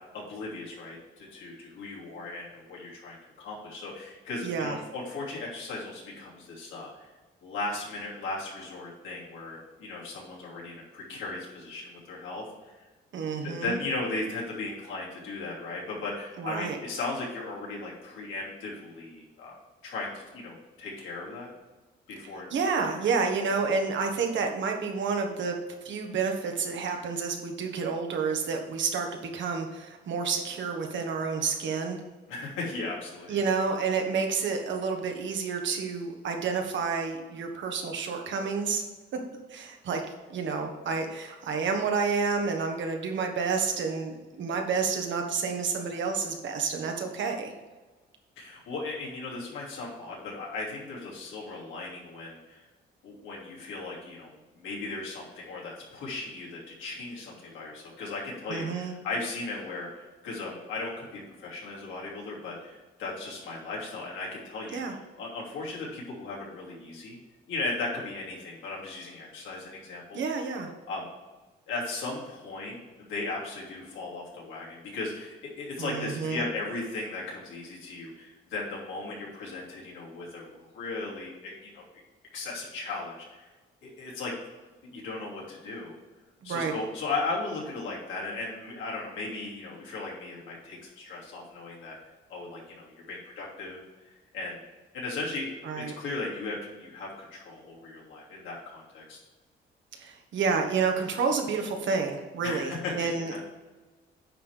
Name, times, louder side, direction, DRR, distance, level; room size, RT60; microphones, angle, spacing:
voice 1, 0.1-7.1 7.4-12.4 13.4-19.5 19.8-21.5 22.1-22.5 22.9-23.0 32.3-33.3 48.4-52.6 53.0-67.2 67.5-70.2 70.9-71.1 71.7-81.8 82.3-83.5 83.8-84.3 84.8-85.9 86.4-91.9 92.3-93.8 94.1-94.6 94.9-99.2 102.4-103.4, left 3 dB, 90° left, -4 dB, 2.9 m, -37 dB
voice 2, 4.4-4.7 13.1-13.8 16.4-16.8 22.5-32.0 33.3-38.8 39.5-40.0 40.3-47.5 58.5-58.9 64.7-64.9 70.1-70.7 75.8-76.4 86.4-86.7 95.6-95.9 99.9-103.4, right 5 dB, 70° right, 3 dB, 1.5 m, -29 dB
9.6 x 3.7 x 6.4 m, 1.2 s
cardioid pair, 90°, 20 cm